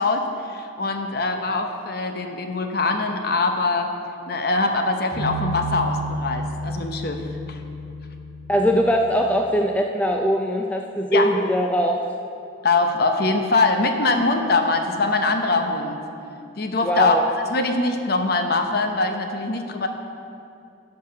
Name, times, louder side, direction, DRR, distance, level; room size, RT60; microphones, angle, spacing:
voice 1, 0.0-3.9 4.3-7.6 11.1-11.3 12.6-16.0 16.6-17.2 17.5-19.9, left 3 dB, 50° left, 5 dB, 0.8 m, -23 dB
sound 1, 5.1-9.4, right 1 dB, 30° left, 1.7 m, -31 dB
voice 2, 8.5-12.0 16.8-17.2, equal, 5° left, 2 dB, 0.3 m, -21 dB
11.5 x 4.7 x 6.7 m, 2.6 s
head